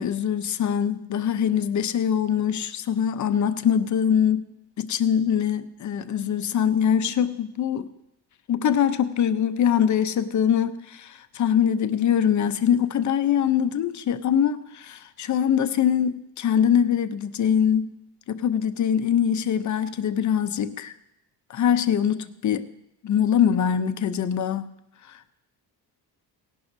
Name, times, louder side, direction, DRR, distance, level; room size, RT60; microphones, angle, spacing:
voice 1, 0.0-4.5 4.8-7.9 8.5-17.9 18.3-20.9 21.5-22.7 23.0-24.7 25.1-25.3, left 8 dB, 45° left, 0.7 m, -23 dB
17.5 x 11.0 x 2.7 m
cardioid pair, 120°, 42 cm